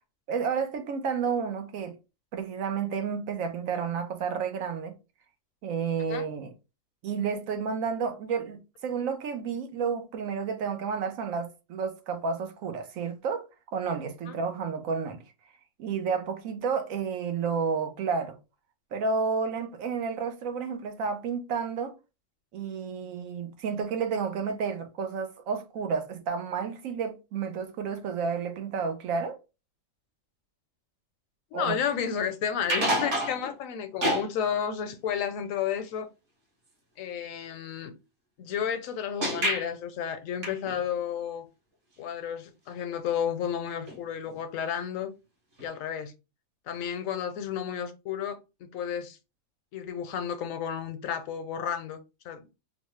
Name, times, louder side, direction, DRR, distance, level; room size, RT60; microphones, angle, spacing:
voice 1, 0.3-1.9 2.3-5.0 5.6-6.5 7.0-15.2 15.8-18.4 18.9-21.9 22.5-29.4 31.5-31.8, right 5 dB, 90° right, 1.1 m, -31 dB
voice 2, 31.5-36.1 37.0-37.9 38.4-41.4 42.0-45.1 45.6-46.1 46.7-49.2 49.7-52.0 52.2-52.4, left 8 dB, 80° left, 1.0 m, -32 dB
sound 1, 32.6-33.5 34.0-34.3 39.2-39.7 40.4-40.8 43.9-44.0 44.3-44.4 45.6-45.7, equal, 65° right, 1.5 m, -28 dB
3.9 x 2.1 x 3.1 m
omnidirectional pair, 1.4 m